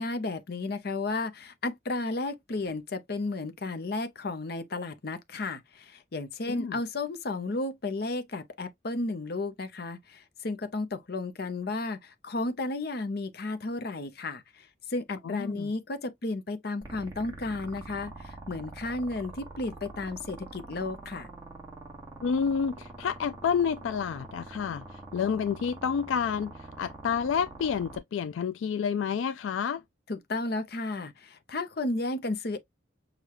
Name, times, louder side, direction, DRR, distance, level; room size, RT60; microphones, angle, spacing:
voice 1, 0.0-21.3 30.1-32.6, left 2 dB, 55° left, 0.7 m, -33 dB
voice 2, 6.5-6.8 15.2-15.7 22.2-24.8 25.1-26.5 26.8-29.8, left 7 dB, 80° left, 0.3 m, -29 dB
sound 1, 16.8-28.0, right 2 dB, 15° right, 1.3 m, -45 dB
6.4 x 2.3 x 2.9 m
head